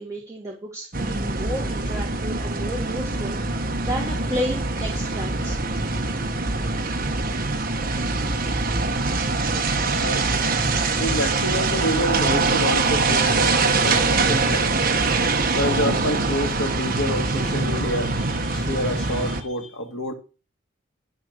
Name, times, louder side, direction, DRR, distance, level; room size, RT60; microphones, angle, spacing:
voice 1, 0.0-5.6, equal, 15° right, 2.7 m, -32 dB
sound 1, 0.9-19.4, right 3 dB, 45° right, 1.4 m, -23 dB
voice 2, 9.5-10.3 11.0-14.8 15.6-20.1, equal, 85° left, 2.4 m, -28 dB
13.5 x 4.5 x 6.8 m
head